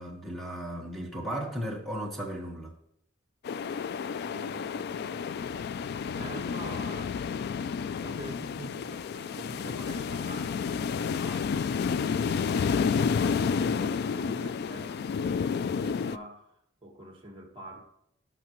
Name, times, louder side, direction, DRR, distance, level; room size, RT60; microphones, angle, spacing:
voice 1, 0.0-2.7, equal, ahead, 1.3 m, -35 dB
sound 1, 3.4-16.2, left 6 dB, 55° left, 0.3 m, -30 dB
voice 2, 4.2-5.3 6.2-7.2 8.0-17.8, right 1 dB, 25° right, 1.6 m, -45 dB
16.5 x 6.0 x 3.0 m
head